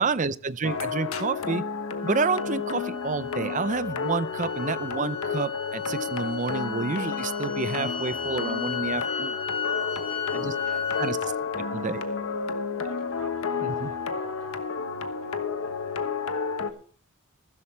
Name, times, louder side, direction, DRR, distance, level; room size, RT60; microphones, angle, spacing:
voice 1, 0.0-1.6 2.0-9.4 10.3-10.5 11.0-11.2 11.7-12.0 13.6-13.9, right 4 dB, 35° right, 16 dB, 0.5 m, -29 dB
sound 1, 0.6-16.7, left 5 dB, 70° left, 1.2 m, -31 dB
sound 2, 2.0-11.1, left 7 dB, 25° left, 3.9 m, -35 dB
voice 2, 9.6-16.8, right 2 dB, 85° right, 2 dB, 6.5 m, -47 dB
15.5 x 13.0 x 3.3 m, 0.42 s
head